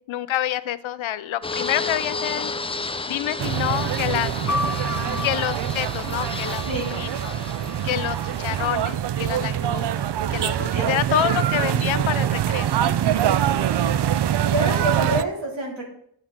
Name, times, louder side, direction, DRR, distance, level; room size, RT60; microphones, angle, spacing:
voice 1, 0.1-2.5 3.1-4.3 5.2-6.6 7.0-7.3 7.8-9.9 10.3-12.7, left 12 dB, 90° left, 16 dB, 0.6 m, -27 dB
Fixed-wing aircraft airplane, 1.4-8.9, left 3 dB, 15° left, 0.3 m, -33 dB
sound 1, 3.4-15.2, right 10 dB, 65° right, 0.5 m, -24 dB
sound 2, 4.5-8.3 9.1-9.9, left 3 dB, 40° left, 0.8 m, -34 dB
voice 2, 4.9-5.2 6.7-6.9 10.7-10.9 13.4-13.9 14.5-15.8, right 1 dB, 80° right, -1 dB, 2.7 m, -28 dB
9.9 x 7.5 x 3.6 m, 0.68 s
wide cardioid pair, 95°, 46 cm